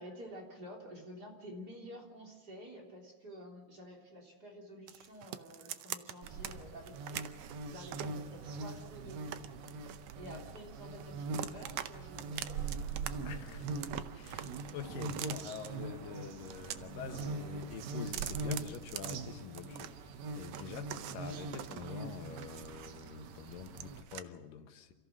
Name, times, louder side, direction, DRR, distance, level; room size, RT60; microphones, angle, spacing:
voice 1, 0.0-7.3 7.7-9.4 10.2-12.8 13.1-13.4 14.3-14.4, equal, 30° right, -1 dB, 3.6 m, -50 dB
sound 1, 4.9-6.5 6.9-8.2 8.7-10.7 11.0-11.9 12.2-13.1 13.4-15.7 16.3-17.3 17.6-19.9 20.3-23.1 23.4-24.2, right 11 dB, 90° right, 1.4 m, -44 dB
sound 2, 6.2-24.0, right 3 dB, 65° right, 2.1 m, -42 dB
sound 3, 6.3-7.7 8.3-9.4 9.6-9.8 10.2-11.1 11.4-11.6 11.9-13.6 14.0-14.3 14.6-15.6 16.0-16.1 16.9-18.0 18.5-18.8 19.1-19.7, right 1 dB, 45° right, 1.1 m, -58 dB
voice 2, 13.2-13.7 14.1-24.9, left 7 dB, 80° left, 6 dB, 3.0 m, -46 dB
29.0 x 14.5 x 6.5 m, 1.2 s
omnidirectional pair, 3.9 m